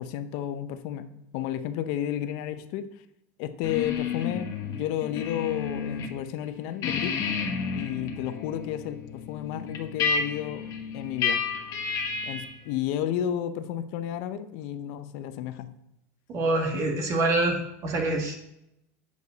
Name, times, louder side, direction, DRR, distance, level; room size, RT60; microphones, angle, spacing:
voice 1, 0.0-2.9 3.4-7.2 7.7-11.5 12.3-15.7, left 10 dB, 65° left, 11 dB, 0.6 m, -32 dB
sound 1, 3.6-6.1 6.4-12.6, left 6 dB, 45° left, 1.3 m, -31 dB
voice 2, 16.3-18.3, right 2 dB, 40° right, 2 dB, 1.9 m, -26 dB
8.4 x 5.2 x 3.9 m, 0.84 s
supercardioid pair, 130°, 8 cm